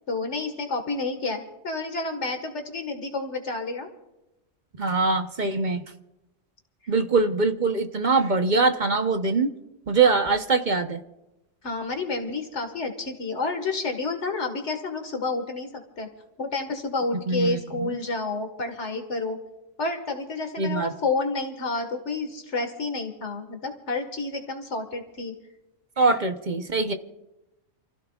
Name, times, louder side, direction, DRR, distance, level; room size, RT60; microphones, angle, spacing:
voice 1, 0.1-3.9 11.6-16.1 16.4-19.4 19.8-25.4, left 3 dB, 65° left, 5 dB, 2.0 m, -30 dB
voice 2, 4.8-5.8 6.9-9.5 9.9-11.0 17.3-17.9 20.6-20.9 26.0-26.9, right 4 dB, 40° right, 7 dB, 0.9 m, -23 dB
29.0 x 15.5 x 2.4 m, 0.95 s
omnidirectional pair, 1.3 m